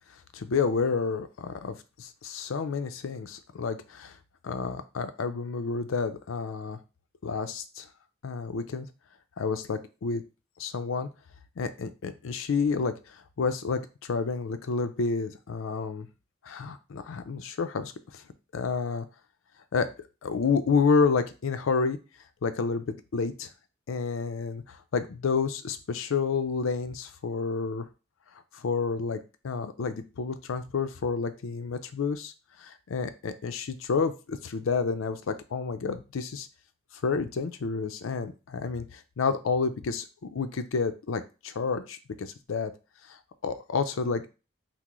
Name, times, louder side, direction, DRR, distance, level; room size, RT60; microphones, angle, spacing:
voice 1, 0.3-4.2 4.4-6.8 7.2-7.9 8.2-8.9 9.4-10.2 10.6-11.1 11.6-16.1 16.4-18.2 18.5-19.1 19.7-19.9 20.2-22.0 22.4-23.5 23.9-27.9 28.5-32.3 32.6-36.5 37.0-42.7 43.1-43.2 43.4-44.3, left 5 dB, 80° left, 10 dB, 0.5 m, -30 dB
5.9 x 2.0 x 3.0 m, 0.32 s
head